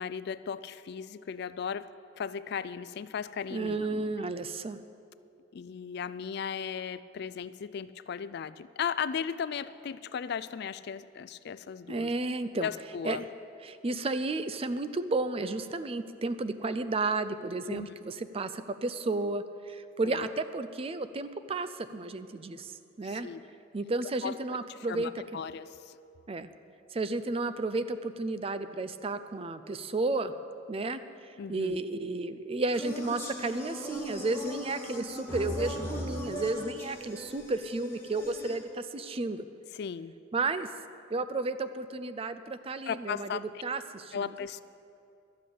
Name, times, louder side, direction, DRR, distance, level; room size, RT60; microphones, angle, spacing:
voice 1, 0.0-1.9 2.2-3.8 4.2-4.3 5.5-12.1 12.6-13.2 17.7-17.9 20.0-20.3 23.0-23.4 24.2-24.4 24.9-25.9 31.4-31.8 39.7-40.1 42.9-43.4 44.1-44.6, left 7 dB, 55° left, 15 dB, 0.3 m, -36 dB
voice 2, 3.5-4.8 11.9-12.7 13.0-13.2 13.6-23.3 23.7-25.1 26.3-26.5 26.9-30.3 30.7-31.0 31.5-39.4 40.3-40.7 41.1-44.3, right 3 dB, 30° right, 12 dB, 0.4 m, -32 dB
sound 1, 32.7-38.6, equal, 10° left, 1.8 m, -39 dB
12.5 x 7.7 x 8.4 m, 2.6 s
head